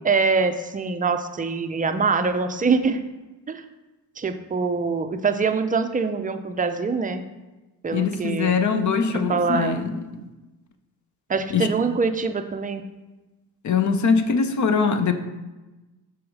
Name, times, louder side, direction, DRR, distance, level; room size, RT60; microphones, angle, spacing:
voice 1, 0.0-3.0 3.5-3.6 4.2-7.2 7.8-8.5 9.1-9.8 11.3-12.8, right 4 dB, 20° right, 7 dB, 0.4 m, -24 dB
voice 2, 7.9-10.1 11.5-11.7 13.6-15.1, left 5 dB, 45° left, 9 dB, 0.7 m, -22 dB
6.2 x 4.8 x 4.7 m, 1.1 s
cardioid pair, 110°, 41 cm